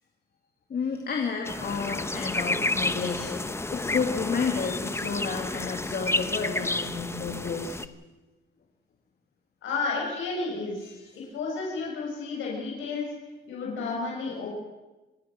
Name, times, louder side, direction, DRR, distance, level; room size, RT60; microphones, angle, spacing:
voice 1, 0.7-7.8 10.8-11.1, left 5 dB, 50° left, 2 dB, 2.8 m, -31 dB
sound 1, 1.4-7.9, left 2 dB, 15° left, 1.1 m, -31 dB
voice 2, 9.6-13.0 13.5-14.5, left 4 dB, 80° left, -3 dB, 7.0 m, -32 dB
27.5 x 15.5 x 6.2 m, 1.1 s
cardioid pair, 90°, 20 cm